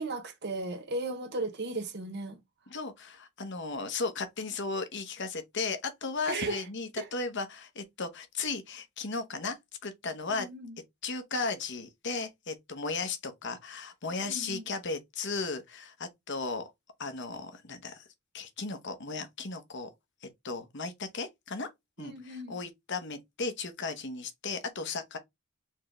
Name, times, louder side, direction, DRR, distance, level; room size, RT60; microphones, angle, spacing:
voice 1, 0.0-2.4 6.3-6.6 7.0-7.1 10.3-10.8 14.2-14.7 22.0-22.6, right 2 dB, 50° right, 1.2 m, -36 dB
voice 2, 2.7-9.6 9.8-10.5 11.0-16.6 17.0-18.0 18.3-19.9 20.2-21.7 22.0-25.2, left 4 dB, 55° left, 1.1 m, -35 dB
4.6 x 3.6 x 3.2 m
head